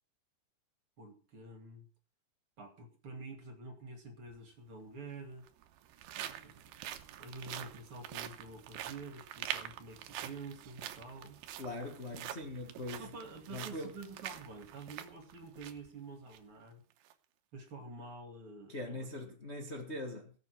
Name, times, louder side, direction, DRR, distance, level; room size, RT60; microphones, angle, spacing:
voice 1, 1.0-1.9 2.6-5.5 6.2-11.4 13.0-16.8 17.5-19.3, right 3 dB, 40° right, 2.7 m, -48 dB
sound 1, 4.3-4.4 5.3-15.9 16.3-16.4 16.9-17.1, right 12 dB, 85° right, 3.1 m, -45 dB
voice 2, 11.6-13.1 13.5-13.9 18.7-20.3, left 2 dB, 75° left, 0.6 m, -42 dB
16.5 x 7.6 x 6.1 m
omnidirectional pair, 4.7 m